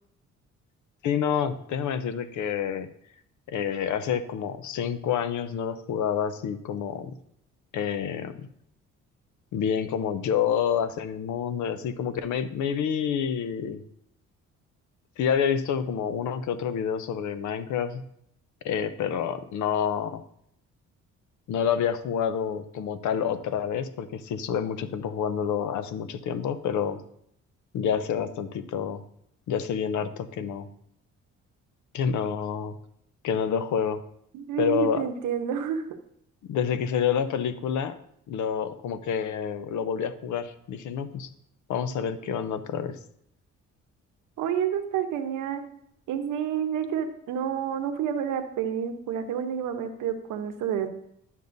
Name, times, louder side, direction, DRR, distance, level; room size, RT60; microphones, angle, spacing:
voice 1, 1.0-2.9 3.5-7.1 7.7-8.5 9.5-13.8 15.2-18.0 18.6-20.2 21.5-27.0 27.7-29.0 29.5-30.7 31.9-32.7 33.2-34.0 34.6-35.1 36.5-37.9 38.3-41.3 41.7-43.0, left 8 dB, 75° left, 12 dB, 0.7 m, -28 dB
voice 2, 34.3-35.8 44.4-45.6 46.1-50.9, right 8 dB, 90° right, 7 dB, 0.9 m, -29 dB
11.5 x 5.4 x 2.6 m, 0.71 s
cardioid pair, 90°, 30 cm